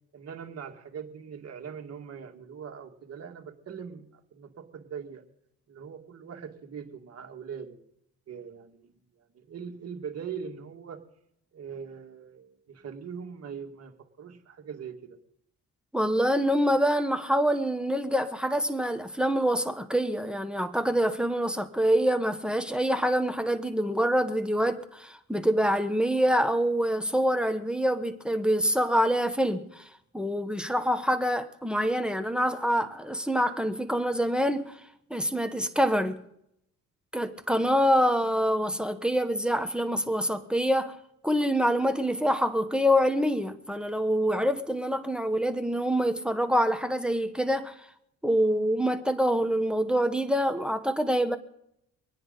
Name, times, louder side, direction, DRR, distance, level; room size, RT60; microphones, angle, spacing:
voice 1, 0.1-5.2 5.7-7.8 8.3-11.0 11.5-15.2, right 7 dB, 55° right, 2.2 m, -41 dB
voice 2, 15.9-29.9 30.1-34.8 35.1-36.2 37.1-40.9 41.2-47.7 48.2-51.4, equal, 5° right, 1.2 m, -26 dB
25.5 x 9.7 x 4.1 m
cardioid pair, 90°, 30 cm